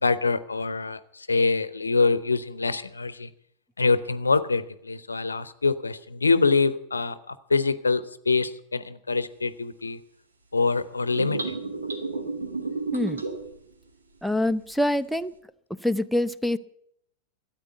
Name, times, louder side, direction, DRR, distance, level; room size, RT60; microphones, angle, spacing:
voice 1, 0.0-3.3 3.8-10.0 10.5-11.6, left 4 dB, 75° left, 15 dB, 0.7 m, -25 dB
sound 1, 11.1-13.6, right 3 dB, 75° right, 2.0 m, -31 dB
voice 2, 14.2-15.3 15.8-16.6, left 1 dB, ahead, 15 dB, 0.5 m, -25 dB
13.5 x 9.0 x 9.0 m, 0.75 s
figure-of-eight pair, 90°, 0 cm